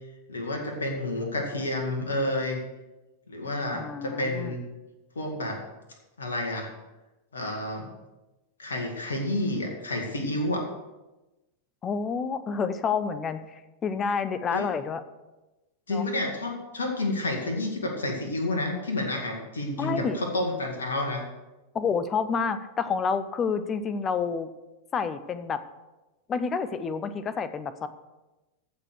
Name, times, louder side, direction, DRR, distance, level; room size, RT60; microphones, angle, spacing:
voice 1, 0.3-2.6 3.3-4.6 5.2-5.6 6.2-6.7 7.3-7.9 8.6-10.7 14.5-14.7 15.9-21.2, left 1 dB, 70° left, 2 dB, 2.0 m, -30 dB
voice 2, 3.7-4.5 11.8-15.0 15.9-16.0 19.8-20.2 21.7-24.5 24.9-25.6 26.3-27.9, left 5 dB, 25° left, 13 dB, 0.8 m, -29 dB
14.5 x 5.0 x 6.4 m, 1.1 s
figure-of-eight pair, 90°, 0 cm